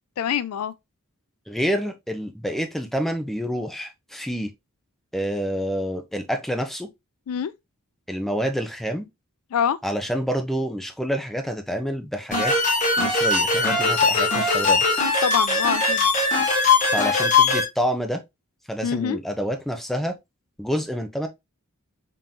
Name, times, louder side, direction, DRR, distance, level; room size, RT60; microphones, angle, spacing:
voice 1, 0.2-0.7 7.3-7.5 9.5-9.8 15.2-16.1 18.8-19.2, left 8 dB, 70° left, 0.4 m, -25 dB
voice 2, 1.5-4.5 5.1-6.9 8.1-9.1 9.8-12.5 13.0-14.8 16.9-18.2 18.7-20.2 20.6-21.3, equal, ahead, 0.6 m, -28 dB
sound 1, 12.3-17.6, left 3 dB, 35° left, 1.5 m, -20 dB
3.8 x 3.7 x 2.7 m
head